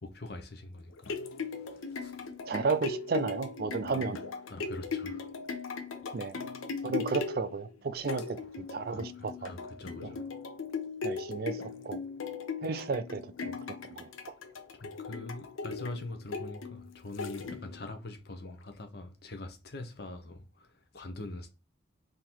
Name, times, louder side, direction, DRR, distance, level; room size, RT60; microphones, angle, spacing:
voice 1, 0.0-2.3 3.8-4.1 4.5-5.3 8.2-8.3 8.9-10.3 14.7-21.5, left 2 dB, 55° left, 0.8 m, -44 dB
sound 1, 0.8-17.9 18.4-18.5, left 4 dB, 90° left, 0.6 m, -39 dB
voice 2, 2.5-4.2 6.1-6.4 6.8-8.4 8.7-9.5 10.0-10.1 11.0-11.6 11.8-12.0 12.6-13.6 13.9-14.1, right 4 dB, 50° right, 0.4 m, -33 dB
3.7 x 2.7 x 4.4 m
head